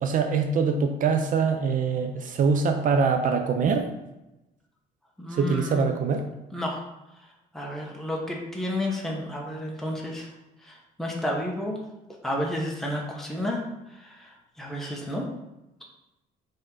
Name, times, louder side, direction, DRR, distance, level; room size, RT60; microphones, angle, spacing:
voice 1, 0.0-3.9 5.4-6.2, right 5 dB, 50° right, 6 dB, 0.6 m, -24 dB
voice 2, 5.2-5.9 6.5-6.8 7.5-10.3 10.6-11.8 12.2-13.6 13.9-15.2, left 1 dB, ahead, -2 dB, 1.1 m, -31 dB
5.4 x 3.7 x 5.5 m, 0.96 s
cardioid pair, 110°, 17 cm